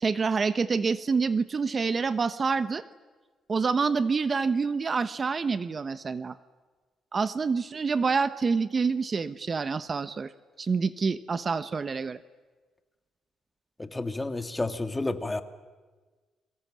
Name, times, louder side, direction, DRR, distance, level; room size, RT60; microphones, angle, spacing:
voice 1, 0.0-2.8 3.5-6.4 7.1-10.3 10.6-12.2, right 5 dB, 35° right, 14 dB, 0.9 m, -27 dB
voice 2, 13.8-15.4, left 2 dB, 15° left, 9 dB, 1.9 m, -30 dB
29.5 x 22.5 x 7.6 m, 1.3 s
cardioid pair, 90°, 0 cm